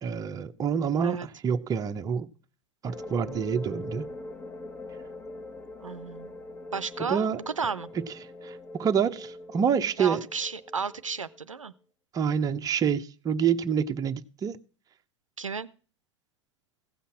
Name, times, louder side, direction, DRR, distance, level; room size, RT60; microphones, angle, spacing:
voice 1, 0.0-2.3 2.8-4.1 7.0-7.4 8.4-10.2 12.1-14.6, right 7 dB, 20° right, 0.8 m, -27 dB
sound 1, 2.8-11.4, left 2 dB, 15° left, 1.3 m, -42 dB
voice 2, 5.8-6.3 6.7-7.9 10.0-11.7 15.4-15.7, right 5 dB, 90° right, 0.6 m, -33 dB
15.5 x 5.6 x 7.5 m
figure-of-eight pair, 95°, 16 cm